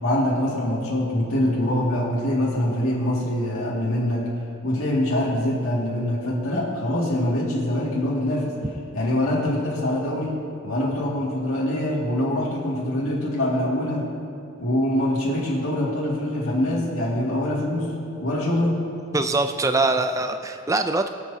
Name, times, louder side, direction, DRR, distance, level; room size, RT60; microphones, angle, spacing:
voice 1, 0.0-4.2 4.6-8.5 8.9-10.3 10.6-14.0 14.6-17.9 18.2-18.8, left 1 dB, 75° left, -6 dB, 2.1 m, -24 dB
voice 2, 19.1-21.1, right 2 dB, 15° right, 8 dB, 0.3 m, -23 dB
22.5 x 7.7 x 2.8 m, 2.7 s
head